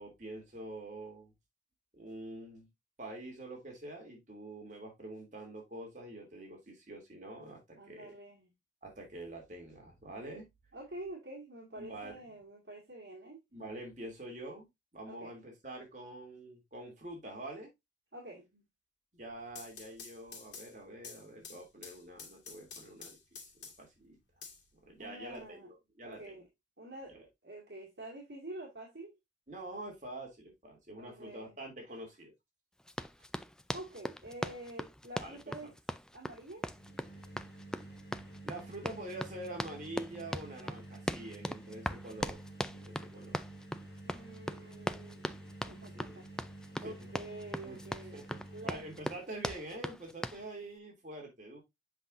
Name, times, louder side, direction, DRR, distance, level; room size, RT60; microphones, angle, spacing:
voice 1, 0.0-1.3 1.9-2.7 3.0-8.1 8.8-10.5 11.8-12.1 13.5-14.7 14.9-17.7 19.1-24.2 24.8-26.3 27.1-27.2 29.5-32.3 35.2-35.4 38.4-42.4 42.7-43.4 45.9-46.2 46.7-46.9 47.6-47.8 48.1-48.4 48.6-51.6, right 1 dB, 45° right, 2.7 m, -46 dB
voice 2, 7.7-8.5 10.7-13.4 15.1-15.4 18.1-18.6 25.0-25.7 26.0-26.5 26.8-29.2 31.0-31.6 33.7-35.7 36.1-37.0 44.0-45.4 45.6-48.2 48.5-48.8, right 1 dB, 75° right, 2.0 m, -48 dB
sound 1, 19.3-24.0 24.4-25.4, left 5 dB, 80° left, 2.2 m, -50 dB
Run, 32.9-50.4, equal, 5° left, 0.3 m, -40 dB
sound 2, 36.6-49.2, right 2 dB, 55° left, 3.1 m, -50 dB
7.9 x 5.6 x 2.5 m
head